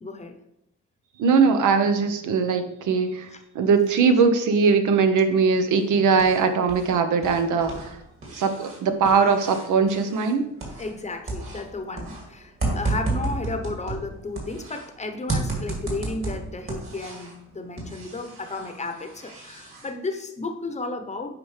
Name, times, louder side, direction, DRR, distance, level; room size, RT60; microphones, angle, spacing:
voice 1, 0.0-0.3 3.3-3.4 10.8-21.3, left 3 dB, 25° left, 6 dB, 0.8 m, -33 dB
voice 2, 1.2-3.3 3.5-8.0 8.3-10.5, right 5 dB, 85° right, 8 dB, 0.9 m, -20 dB
sound 1, 5.8-6.9 7.2-11.0 11.3-14.9 15.3-17.4 17.8-19.9, right 2 dB, 45° right, 2.6 m, -32 dB
8.6 x 5.1 x 3.2 m, 0.82 s
cardioid pair, 115°, 30 cm